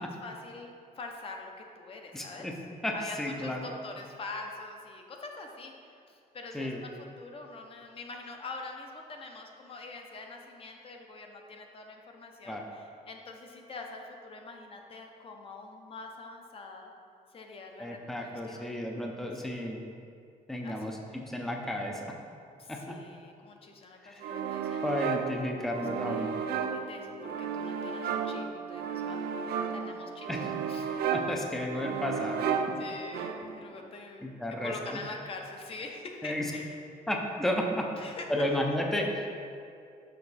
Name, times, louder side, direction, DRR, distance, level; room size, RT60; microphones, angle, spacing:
voice 1, 0.0-2.5 2.9-16.9 17.3-18.7 19.3-19.7 20.6-21.0 22.6-24.8 26.1-26.4 26.7-29.2 29.7-30.3 30.7-31.0 32.8-34.3 34.6-36.8 37.9-38.5, left 3 dB, 35° left, 2 dB, 0.7 m, -44 dB
voice 2, 2.1-2.5 2.8-3.7 6.5-6.8 12.5-12.6 17.8-19.8 20.5-22.1 22.7-23.0 24.0-24.2 24.8-26.3 30.3-30.5 31.1-32.4 34.2-35.0 36.2-36.5 37.1-37.9 38.3-39.3, left 1 dB, ahead, 1 dB, 0.5 m, -33 dB
sound 1, 24.2-33.7, right 7 dB, 90° right, 0.5 m, -33 dB
6.6 x 5.7 x 4.1 m, 2.4 s
cardioid pair, 155°, 16 cm